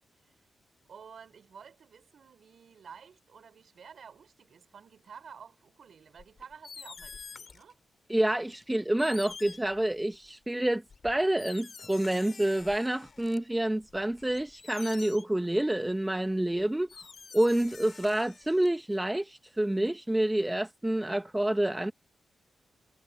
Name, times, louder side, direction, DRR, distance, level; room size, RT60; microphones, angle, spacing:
voice 1, 0.9-7.7, right 6 dB, 65° right, 4.3 m, -51 dB
sound 1, 6.2-7.7 8.5-8.6 9.0-10.3 10.9-13.4 13.8-15.5 16.5-16.6 16.9-19.0, left 5 dB, 55° left, 7.5 m, -47 dB
voice 2, 8.1-17.1 17.3-21.9, right 1 dB, 15° right, 1.4 m, -28 dB
supercardioid pair, 40°, 0 cm